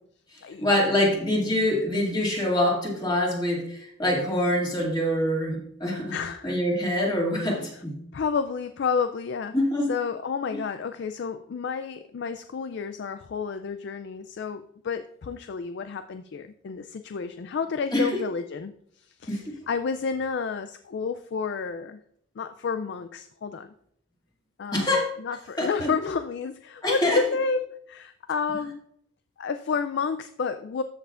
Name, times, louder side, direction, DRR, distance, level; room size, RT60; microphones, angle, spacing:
voice 1, 0.6-6.1 6.4-8.0 9.5-9.9 17.9-18.1 19.3-19.6 24.7-25.1 25.6-25.9 26.8-27.2, left 1 dB, 20° left, -3 dB, 2.0 m, -25 dB
voice 2, 6.1-6.6 8.1-9.6 9.9-22.0 22.4-23.7 24.6-28.8 29.4-30.8, left 5 dB, 55° left, 10 dB, 0.3 m, -30 dB
13.5 x 5.6 x 2.4 m, 0.69 s
head